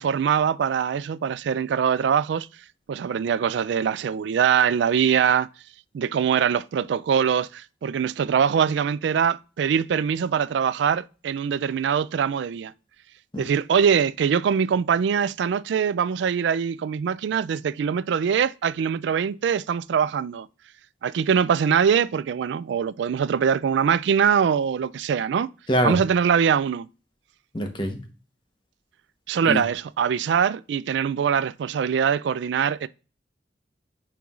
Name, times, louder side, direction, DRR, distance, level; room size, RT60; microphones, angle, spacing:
voice 1, 0.0-2.5 2.9-5.5 5.9-12.7 13.4-20.5 21.0-25.5 25.8-26.9 29.3-32.9, right 7 dB, 80° right, 0.3 m, -23 dB
voice 2, 27.5-28.0 29.5-29.6, equal, 25° left, 0.9 m, -24 dB
9.1 x 4.6 x 2.4 m
head